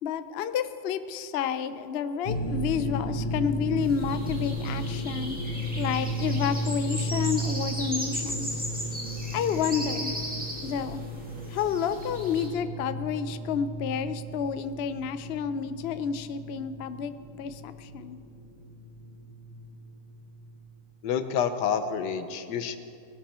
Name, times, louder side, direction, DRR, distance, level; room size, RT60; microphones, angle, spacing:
voice 1, 0.0-5.4 5.8-8.6 9.3-10.1 10.6-11.0 11.5-18.2, left 7 dB, 65° left, 11 dB, 0.6 m, -30 dB
sound 1, 2.3-20.5, equal, 25° left, 0.8 m, -34 dB
sound 2, 3.8-12.5, equal, 5° right, 2.1 m, -37 dB
voice 2, 21.0-22.8, left 7 dB, 90° left, 10 dB, 1.4 m, -28 dB
19.0 x 11.5 x 4.3 m, 2.4 s
omnidirectional pair, 1.8 m